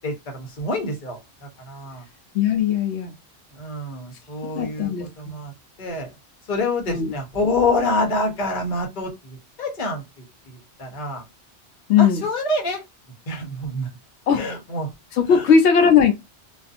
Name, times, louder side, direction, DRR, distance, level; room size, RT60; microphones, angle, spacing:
voice 1, 0.0-2.0 3.5-5.5 5.8-6.1 6.5-11.2 12.0-12.8 13.3-13.9 14.3-14.9 15.3-15.5, left 2 dB, 45° left, 1.0 m, -27 dB
voice 2, 2.3-3.1 4.5-5.1 6.9-7.1 11.9-12.3 14.3-14.4 15.1-16.1, left 7 dB, 75° left, 0.9 m, -18 dB
2.5 x 2.5 x 2.4 m
omnidirectional pair, 1.2 m